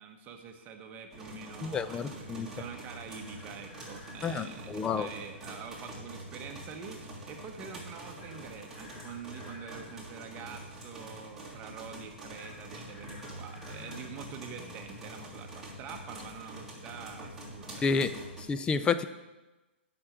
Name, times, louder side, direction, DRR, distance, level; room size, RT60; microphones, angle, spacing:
voice 1, 0.0-17.9, right 6 dB, 25° right, 4 dB, 1.3 m, -46 dB
sound 1, 1.1-18.4, right 1 dB, 5° right, 3.1 m, -45 dB
voice 2, 1.6-2.5 4.2-5.1 17.8-18.1 18.4-19.0, left 5 dB, 15° left, 12 dB, 0.5 m, -30 dB
Chicken rooster, 2.5-4.3 8.2-9.9 12.3-14.1, left 3 dB, 35° left, 2.1 m, -54 dB
8.5 x 6.2 x 8.0 m, 1.1 s
hypercardioid pair, 135°, 7 cm